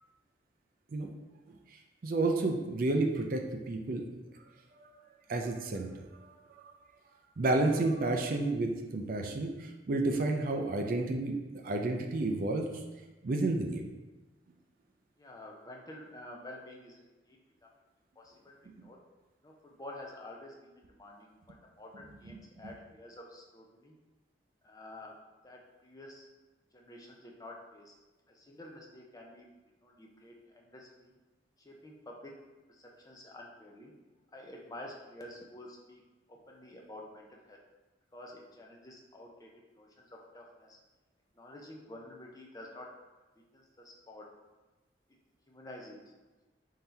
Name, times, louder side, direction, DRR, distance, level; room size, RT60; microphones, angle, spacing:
voice 1, 2.0-4.0 4.8-4.9 5.3-6.1 6.5-6.6 7.4-11.3 11.6-12.7 13.2-13.8 22.3-22.7, right 2 dB, 50° right, 3 dB, 0.4 m, -31 dB
voice 2, 15.2-17.0 17.3-17.4 18.2-19.0 19.4-21.3 21.8-23.9 24.6-25.2 25.4-26.3 26.7-27.9 28.3-29.5 29.8-31.1 31.6-32.4 32.7-33.9 34.3-36.0 36.3-37.6 38.1-39.5 39.8-40.8 41.4-42.9 43.5-44.3 45.5-46.1, left 1 dB, 20° left, -1 dB, 0.5 m, -49 dB
3.8 x 2.7 x 4.4 m, 1.2 s
head